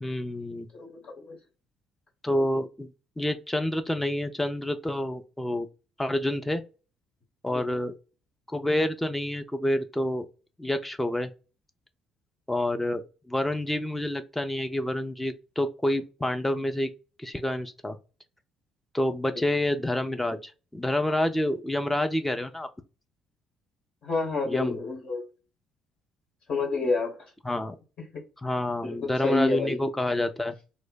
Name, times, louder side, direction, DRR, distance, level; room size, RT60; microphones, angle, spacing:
voice 1, 0.0-0.7 2.2-2.9 3.2-5.7 6.0-6.6 7.4-7.9 8.5-10.3 10.6-11.3 12.5-16.9 17.2-18.0 18.9-22.7 24.5-24.8 27.4-27.8 28.4-30.6, left 1 dB, 10° left, 0.4 m, -28 dB
voice 2, 0.7-1.4 7.5-7.8 24.0-25.2 26.5-27.2 28.1-28.2 28.8-29.8, left 3 dB, 45° left, 1.1 m, -29 dB
2.6 x 2.0 x 3.7 m
figure-of-eight pair, 50°, 2 cm